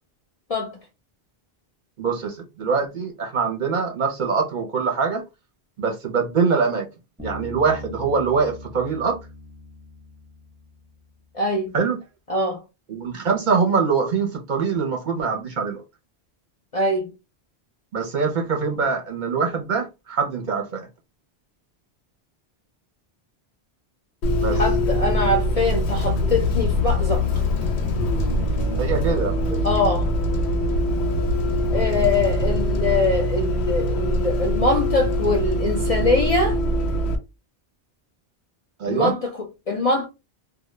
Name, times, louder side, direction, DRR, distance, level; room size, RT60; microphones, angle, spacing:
voice 1, 2.0-5.2 5.8-6.9 7.2-9.2 11.7-12.0 12.9-15.8 17.9-20.9 24.4-24.6 28.8-29.6 38.8-39.1, right 5 dB, 55° right, 0.7 m, -23 dB
Bass guitar, 7.2-10.9, left 1 dB, 10° right, 0.6 m, -40 dB
voice 2, 11.3-11.7 12.3-12.6 16.7-17.1 24.5-27.2 29.6-30.1 31.7-36.6 38.8-40.1, left 2 dB, 50° left, 0.5 m, -23 dB
Bus, 24.2-37.2, left 1 dB, 90° left, 0.9 m, -23 dB
2.2 x 2.0 x 3.0 m
omnidirectional pair, 1.1 m